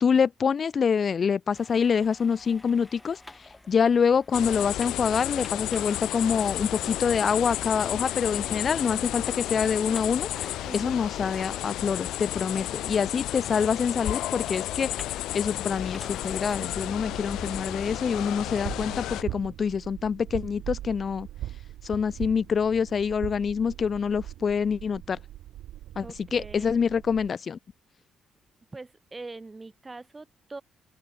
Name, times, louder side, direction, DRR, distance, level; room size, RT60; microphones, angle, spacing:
voice 1, 0.0-10.3 10.7-15.1 15.3-21.3 21.8-25.2 26.0-26.1 26.3-27.6, left 6 dB, 45° left, 1.0 m, -26 dB
sound 1, 1.5-16.6, left 2 dB, 15° left, 5.7 m, -51 dB
sound 2, 4.3-19.2, left 14 dB, 85° left, 1.5 m, -32 dB
voice 2, 10.6-11.0 26.0-26.8 28.7-30.6, right 3 dB, 20° right, 2.9 m, -42 dB
sound 3, 16.3-27.3, right 13 dB, 85° right, 1.2 m, -41 dB
open air
cardioid pair, 90°, 0 cm